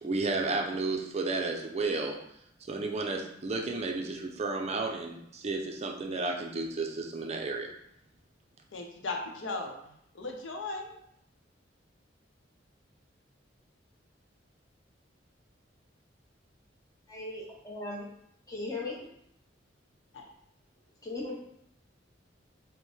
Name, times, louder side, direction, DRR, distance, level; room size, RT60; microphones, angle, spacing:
voice 1, 0.0-2.2 2.6-7.7, right 3 dB, 35° right, 2 dB, 0.4 m, -32 dB
voice 2, 8.7-10.9 20.1-20.2, left 3 dB, 85° left, 2 dB, 0.7 m, -37 dB
voice 3, 17.1-18.1 18.5-19.1 21.0-21.4, left 2 dB, 20° left, -3 dB, 0.8 m, -37 dB
5.3 x 2.1 x 3.1 m, 0.74 s
head